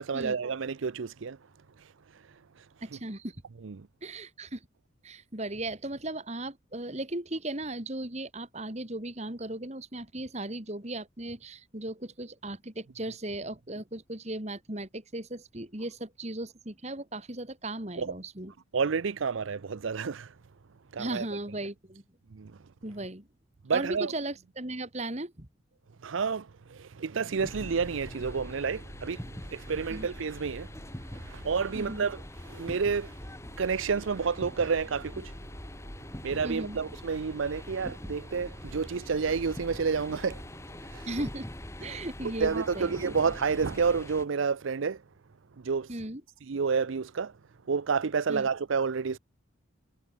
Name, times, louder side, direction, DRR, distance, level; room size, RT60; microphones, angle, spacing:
voice 1, 0.0-1.4 3.6-3.9 18.0-18.1 18.7-20.3 20.9-21.2 22.3-22.5 23.6-24.1 26.0-30.7 31.1-33.1 33.6-35.3 36.2-40.4 40.9-41.1 42.2-45.0 45.6-45.9 46.5-47.3 47.7-49.2, right 5 dB, 75° right, 0.6 m, -30 dB
voice 2, 2.8-3.4 4.0-4.7 5.0-18.5 21.0-22.0 22.8-23.3 23.7-25.5 29.9-30.1 31.7-32.1 36.4-36.8 41.1-41.5 41.8-42.9 45.9-46.2 48.3-48.5, right 1 dB, 35° right, 2.6 m, -37 dB
sound 1, 27.4-44.2, left 1 dB, 15° left, 1.7 m, -43 dB
head